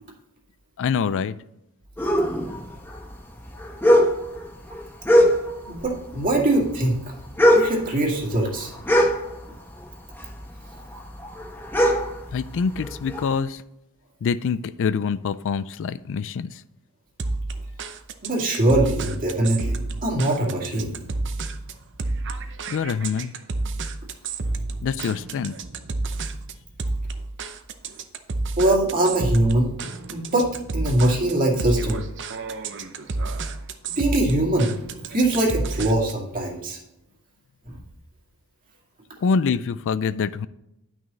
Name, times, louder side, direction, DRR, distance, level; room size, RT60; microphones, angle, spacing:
voice 1, 0.8-1.4 12.3-13.6 14.2-16.5 22.7-23.3 24.8-25.5 39.2-40.5, left 5 dB, 60° left, 16 dB, 0.4 m, -25 dB
sound 1, 2.0-5.8 6.1-9.8 10.1-13.3, equal, 10° left, 1.3 m, -21 dB
voice 2, 5.7-7.0 7.5-8.7 18.2-21.0 28.6-29.7 30.1-32.0 34.0-34.7 35.1-36.8 37.7-37.8, right 1 dB, 40° right, -1 dB, 2.2 m, -22 dB
sound 2, 17.2-36.3, right 2 dB, 55° right, 0.7 m, -30 dB
10.5 x 6.2 x 4.1 m, 0.83 s
head